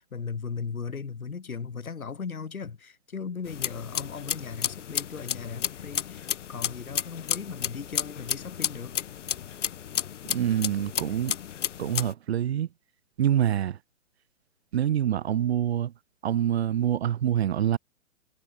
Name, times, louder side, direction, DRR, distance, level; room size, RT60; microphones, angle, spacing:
voice 1, 0.0-9.0, left 5 dB, 90° left, 7.5 m, -37 dB
sound 1, 3.4-12.1, left 9 dB, 60° left, 1.4 m, -32 dB
voice 2, 10.3-11.3 11.8-12.7 13.2-13.8 14.7-15.9 16.2-17.8, right 10 dB, 50° right, 2.1 m, -25 dB
hypercardioid pair, 155°, 41 cm